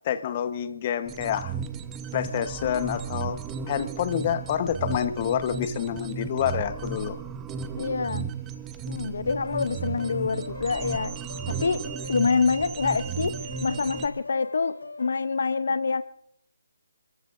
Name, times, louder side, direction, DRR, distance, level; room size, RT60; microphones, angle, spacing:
voice 1, 0.0-1.6 2.1-3.4 3.7-7.2, left 9 dB, 30° left, 11 dB, 1.0 m, -28 dB
sound 1, 1.1-14.1, right 7 dB, 15° right, 0.7 m, -35 dB
voice 2, 7.8-8.2 8.9-11.2 11.5-11.8 12.1-16.0, left 4 dB, 60° left, 13 dB, 0.6 m, -26 dB
sound 2, 9.3-15.2, left 3 dB, 85° left, 4.7 m, -41 dB
29.5 x 14.0 x 2.5 m, 0.71 s
figure-of-eight pair, 155°, 0 cm